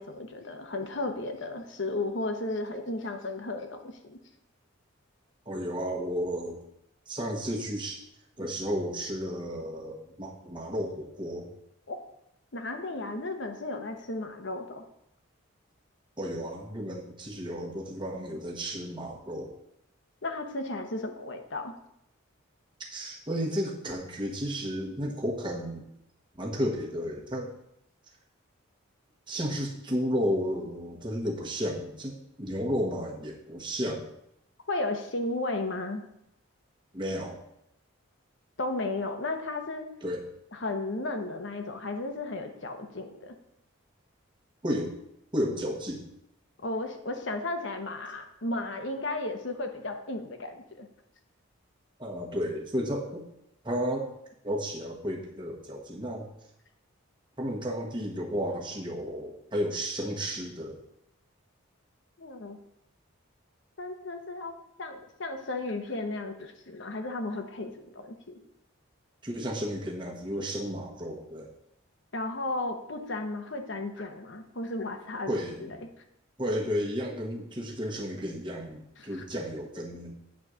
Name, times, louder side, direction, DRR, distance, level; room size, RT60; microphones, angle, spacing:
voice 1, 0.0-4.2 11.9-12.0 12.5-14.8 20.2-21.7 34.7-36.0 38.6-39.9 40.5-43.3 46.6-50.9 62.2-62.6 63.8-64.5 64.8-68.4 72.1-75.8 79.0-79.2, left 2 dB, 60° left, 6 dB, 1.0 m, -34 dB
voice 2, 5.5-6.6 7.1-8.0 8.4-11.5 16.2-19.5 22.9-25.8 26.3-27.5 29.3-34.1 36.9-37.4 40.0-40.3 44.6-44.9 45.3-46.0 52.0-53.2 53.6-54.1 54.4-56.3 57.4-60.8 69.2-71.5 75.3-75.8 76.4-80.1, equal, 20° right, -1 dB, 1.3 m, -32 dB
8.6 x 4.2 x 6.3 m, 0.79 s
head